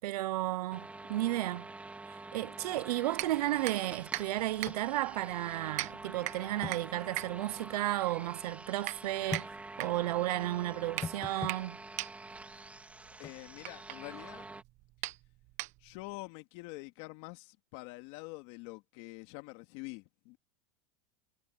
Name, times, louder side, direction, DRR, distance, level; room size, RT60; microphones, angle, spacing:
voice 1, 0.0-1.7 2.3-9.5 9.8-11.8, right 16 dB, 85° right, 0.7 m, -33 dB
sound 1, 0.7-14.6, right 2 dB, 5° right, 3.9 m, -47 dB
sound 2, 3.1-16.1, right 18 dB, 40° right, 1.1 m, -42 dB
sound 3, 4.7-4.8 5.1-5.2 6.6-6.8 9.3-9.5 11.0-11.6 13.2-13.4, left 5 dB, 15° left, 1.0 m, -40 dB
voice 2, 13.2-14.5 15.8-20.4, left 23 dB, 50° left, 2.6 m, -46 dB
supercardioid pair, 155°, 19 cm